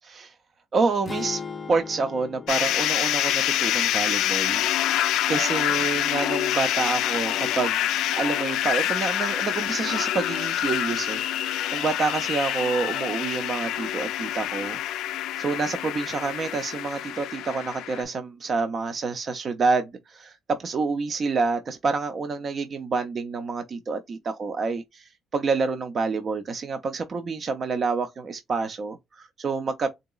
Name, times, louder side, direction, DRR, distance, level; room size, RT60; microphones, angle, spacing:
voice 1, 0.7-1.4 1.7-4.7 5.3-7.9 8.2-14.8 15.4-29.9, right 4 dB, 35° right, 0.4 m, -28 dB
sound 1, 1.1-5.2, left 5 dB, 25° left, 0.5 m, -40 dB
sound 2, 2.5-18.0, left 12 dB, 85° left, 0.3 m, -26 dB
3.8 x 2.8 x 2.3 m
cardioid pair, 145°, 0 cm